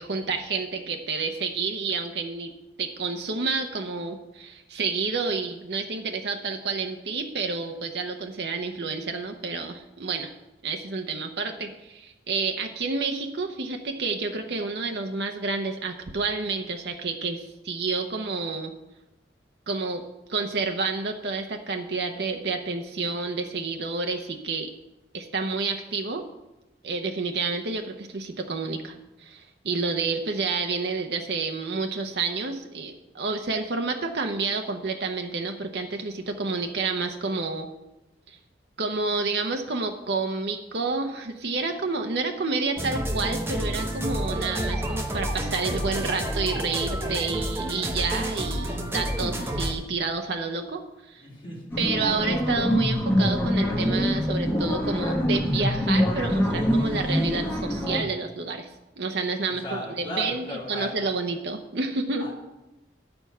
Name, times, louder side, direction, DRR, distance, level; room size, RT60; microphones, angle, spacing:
voice 1, 0.0-2.5 2.8-10.3 10.6-18.7 19.7-20.0 20.3-24.7 25.1-26.2 26.8-37.7 38.3-38.4 38.8-50.8 51.1-51.2 51.8-58.7 59.0-59.6 60.0-62.3, right 4 dB, 70° right, 4 dB, 0.8 m, -29 dB
sound 1, 42.8-49.7, equal, 15° right, 0.9 m, -29 dB
voice 2, 51.2-51.7 59.5-60.9 62.2-62.3, equal, 30° left, -4 dB, 2.8 m, -36 dB
sound 2, 51.7-58.0, equal, 15° left, 1.1 m, -24 dB
9.3 x 6.9 x 5.5 m, 0.96 s
head